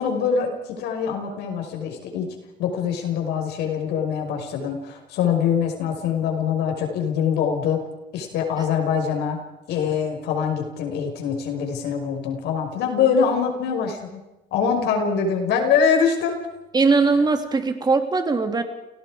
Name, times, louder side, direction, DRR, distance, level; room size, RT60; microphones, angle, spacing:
voice 1, 0.0-2.3 2.6-7.8 8.1-9.4 9.7-14.2 14.5-16.4 17.0-17.1, left 7 dB, 80° left, 3 dB, 5.5 m, -24 dB
voice 2, 16.7-18.6, right 4 dB, 25° right, 6 dB, 2.8 m, -20 dB
29.5 x 18.0 x 5.0 m, 1.0 s
cardioid pair, 110°, 17 cm